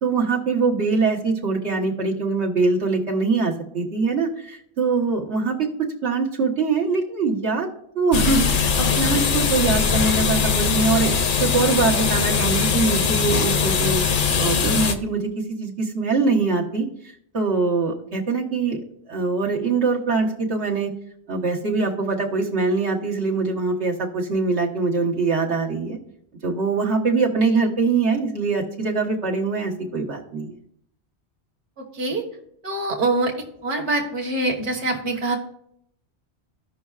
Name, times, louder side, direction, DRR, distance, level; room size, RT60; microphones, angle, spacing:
voice 1, 0.0-7.7 7.9-11.1 11.4-14.0 14.4-16.9 17.3-18.8 19.1-20.9 21.3-26.0 26.4-30.5, right 4 dB, 85° right, -3 dB, 1.5 m, -23 dB
sound 1, 8.1-14.9, left 6 dB, 55° left, 0.7 m, -21 dB
voice 2, 32.6-33.3 33.6-35.4, right 2 dB, 50° right, 1 dB, 1.3 m, -24 dB
15.5 x 5.5 x 2.4 m, 0.71 s
omnidirectional pair, 1.1 m